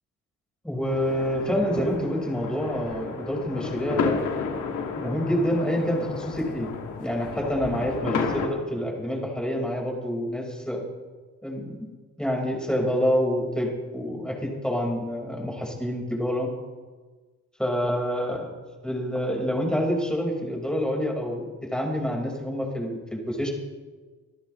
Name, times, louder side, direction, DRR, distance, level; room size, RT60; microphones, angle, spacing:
voice 1, 0.6-4.3 4.9-6.7 7.0-10.8 11.4-11.9 12.2-16.5 17.6-18.5 18.8-23.5, equal, 5° left, -1 dB, 4.9 m, -27 dB
sound 1, 0.8-8.5, left 5 dB, 75° left, 2.2 m, -32 dB
25.5 x 13.0 x 3.2 m, 1.4 s
cardioid pair, 90°, 30 cm